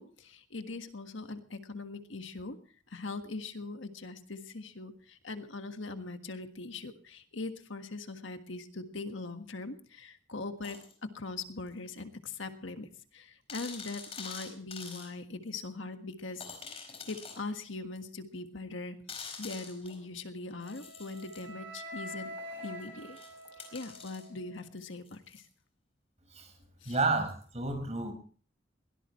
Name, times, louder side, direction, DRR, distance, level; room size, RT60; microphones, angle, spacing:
voice 1, 0.0-2.6 2.9-16.4 17.1-22.3 22.6-23.2 23.6-25.5 26.8-27.0, left 3 dB, 75° left, 7 dB, 1.6 m, -41 dB
sound 1, 10.6-10.9 11.9-12.0 12.5-12.6 12.8-12.9 13.5-15.1 15.6-15.7 16.4-17.4 18.0-18.1 19.1-20.0 20.6-21.4 22.4-25.5 27.3-27.4, left 5 dB, 30° left, 4.6 m, -46 dB
Wind instrument woodwind instrument, 20.6-24.7, equal, 70° right, 5.0 m, -46 dB
voice 2, 26.8-28.1, right 3 dB, 35° right, 6 dB, 5.1 m, -31 dB
22.0 x 17.5 x 3.1 m, 0.41 s
head